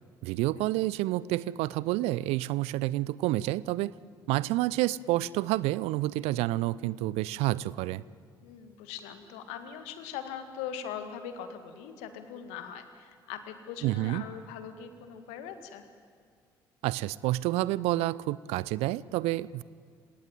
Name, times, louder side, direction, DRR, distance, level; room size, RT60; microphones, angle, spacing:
voice 1, 0.2-3.9 4.3-8.0 13.8-14.2 16.8-19.6, right 17 dB, 65° right, 21 dB, 0.6 m, -29 dB
voice 2, 8.4-15.9, left 8 dB, 65° left, 9 dB, 2.0 m, -41 dB
27.5 x 18.0 x 9.3 m, 2.2 s
figure-of-eight pair, 45°, 12 cm